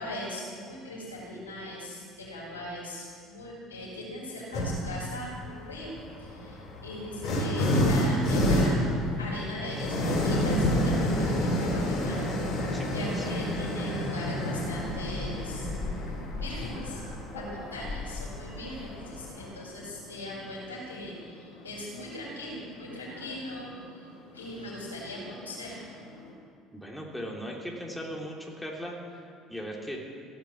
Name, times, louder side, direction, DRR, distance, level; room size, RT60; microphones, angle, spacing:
voice 1, 0.0-5.9 6.2-8.8 9.2-12.3 12.6-15.7 16.4-17.0 17.3-24.1 24.3-25.8, left 1 dB, 85° left, -5 dB, 5.2 m, -39 dB
sound 1, 4.5-5.0 6.0-19.5, equal, 50° left, 4.7 m, -28 dB
sound 2, 8.6-26.4, left 2 dB, 65° left, 4.1 m, -48 dB
voice 2, 12.7-13.3 26.7-30.0, equal, 5° left, -2 dB, 3.2 m, -38 dB
17.5 x 10.5 x 7.3 m, 2.3 s
figure-of-eight pair, 60°, 0 cm